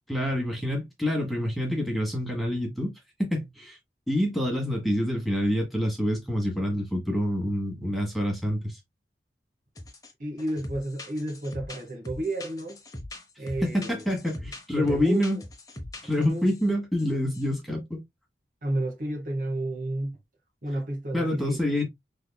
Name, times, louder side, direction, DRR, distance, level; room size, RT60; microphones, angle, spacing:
voice 1, 0.1-2.9 3.2-3.8 4.1-8.8 13.6-15.4 16.0-18.0 21.1-21.9, left 1 dB, ahead, 1.4 m, -27 dB
sound 1, 9.7-10.1 10.4-16.6 17.0-17.1 17.3-17.5, left 1 dB, 20° left, 0.8 m, -42 dB
voice 2, 10.2-12.8 13.4-13.9 14.7-15.2 16.2-16.5 18.6-20.2 20.6-21.6, right 1 dB, 50° right, 1.3 m, -31 dB
5.5 x 3.5 x 2.2 m
head